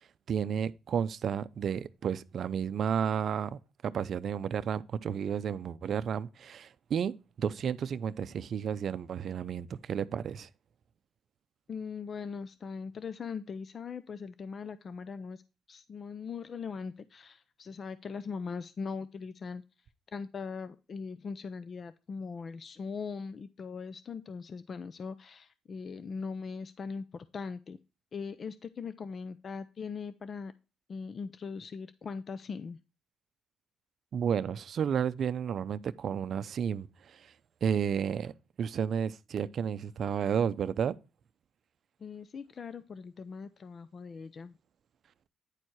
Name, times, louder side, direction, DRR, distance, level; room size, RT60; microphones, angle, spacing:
voice 1, 0.3-10.5 34.1-37.3 37.6-38.3 38.6-41.0, right 7 dB, 60° right, 0.5 m, -32 dB
voice 2, 11.7-15.4 15.7-19.6 20.1-27.8 28.1-30.5 30.9-32.8 42.0-44.6, left 5 dB, 45° left, 0.5 m, -40 dB
9.8 x 4.5 x 4.6 m
cardioid pair, 90°, 0 cm